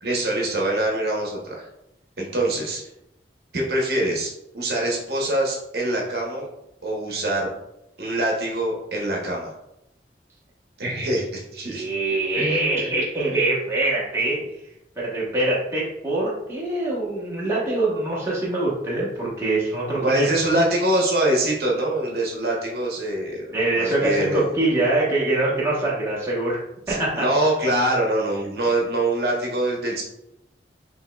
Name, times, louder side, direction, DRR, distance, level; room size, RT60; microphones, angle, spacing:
voice 1, 0.0-1.6 2.2-2.8 3.5-6.5 6.8-7.5 8.0-9.5 10.8-11.9 12.3-12.9 20.0-24.5 26.9-30.0, right 1 dB, 60° right, -2 dB, 0.9 m, -24 dB
voice 2, 11.7-14.4 15.0-20.3 23.5-26.6 26.9-27.2, right 2 dB, 15° right, -7 dB, 1.1 m, -24 dB
5.4 x 3.0 x 2.3 m, 0.85 s
head